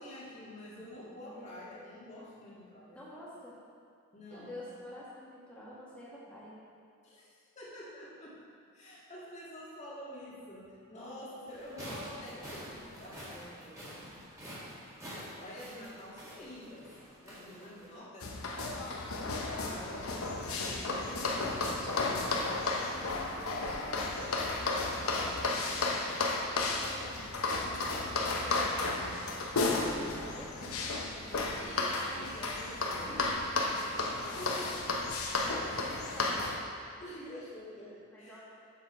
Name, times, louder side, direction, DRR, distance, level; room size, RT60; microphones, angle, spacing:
voice 1, 0.0-3.0 4.1-4.6 7.0-8.4 8.7-13.7 15.1-16.9 17.2-18.9 19.3-20.4 20.7-22.3 31.6-33.3 34.2-35.1 35.7-36.0 37.0-38.4, equal, 30° left, -7 dB, 1.8 m, -47 dB
voice 2, 2.9-3.6 4.3-6.5 20.6-21.3 22.6-24.1 24.6-25.1 25.5-27.2 27.9-29.1 29.7-31.9 32.9-34.1 35.4-36.7 38.1-38.4, left 1 dB, 5° left, -8 dB, 1.7 m, -49 dB
sound 1, 11.5-17.9, equal, 15° right, 1.9 m, -47 dB
sound 2, 18.2-36.6, left 3 dB, 85° left, 0.9 m, -33 dB
7.4 x 6.9 x 4.3 m, 2.4 s
head